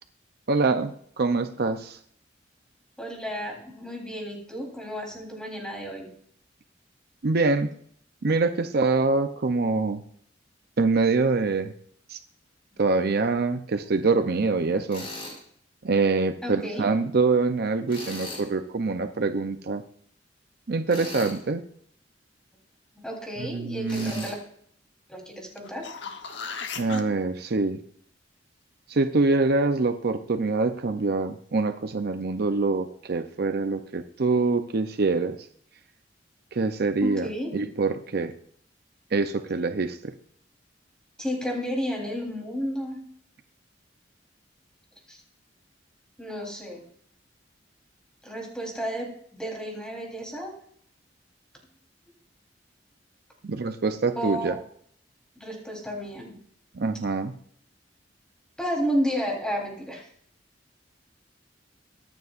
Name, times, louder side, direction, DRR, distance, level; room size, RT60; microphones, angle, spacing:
voice 1, 0.5-2.0 7.2-7.7 8.2-10.0 10.8-11.7 12.1-12.2 12.8-15.1 15.8-19.8 20.7-21.7 23.4-24.3 26.8-27.8 28.9-35.4 36.5-38.3 39.1-40.1 53.4-54.5 56.7-57.4, right 3 dB, 60° right, 8 dB, 0.6 m, -25 dB
voice 2, 3.0-6.1 16.4-16.9 23.0-24.4 25.1-25.9 37.0-37.5 41.2-43.0 45.1-45.2 46.2-46.8 48.2-50.5 54.2-54.5 55.4-56.4 58.6-60.1, equal, 5° left, -1 dB, 3.6 m, -32 dB
Tools, 14.9-15.4 17.9-18.5 20.9-21.4 23.9-24.3, left 2 dB, 30° left, 5.6 m, -38 dB
sound 1, 25.6-27.0 31.8-31.9, left 5 dB, 70° left, 1.1 m, -36 dB
23.5 x 9.6 x 2.5 m, 0.63 s
head